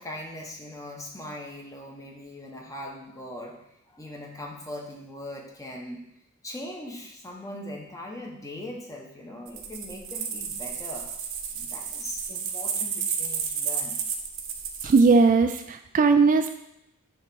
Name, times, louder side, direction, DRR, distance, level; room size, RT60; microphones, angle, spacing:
voice 1, 0.0-3.6 3.9-6.0 6.4-11.1 11.5-14.0, left 1 dB, 15° left, 0 dB, 1.1 m, -40 dB
sound 1, 9.5-15.0, right 7 dB, 65° right, 0.9 m, -32 dB
voice 2, 14.8-16.6, right 4 dB, 35° right, 7 dB, 0.3 m, -19 dB
9.2 x 3.2 x 6.0 m, 0.83 s
head